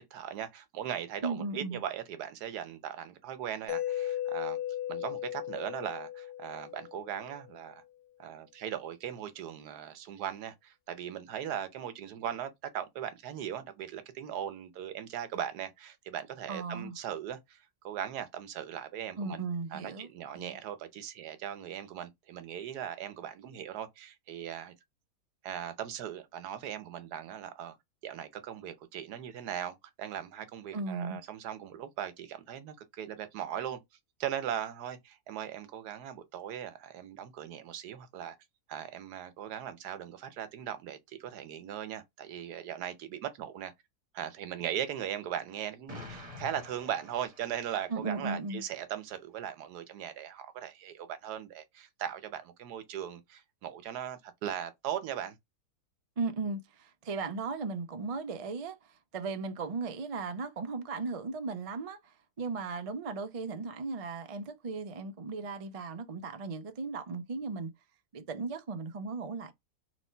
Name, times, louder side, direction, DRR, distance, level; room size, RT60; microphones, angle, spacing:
voice 1, 0.0-4.6 4.9-7.8 8.2-19.4 19.7-24.7 25.4-27.8 28.0-33.8 34.2-38.4 38.7-43.7 44.1-55.4, right 10 dB, 85° right, 1.3 m, -39 dB
voice 2, 1.2-1.8 16.5-16.9 19.2-20.1 20.3-20.6 30.7-31.2 47.9-48.6 56.2-67.7 68.1-69.5, right 4 dB, 55° right, 0.4 m, -36 dB
Mallet percussion, 3.7-7.5, left 12 dB, 80° left, 1.1 m, -36 dB
Explosion, 45.9-48.1, left 2 dB, 25° right, 1.3 m, -47 dB
3.1 x 3.0 x 4.3 m
omnidirectional pair, 1.6 m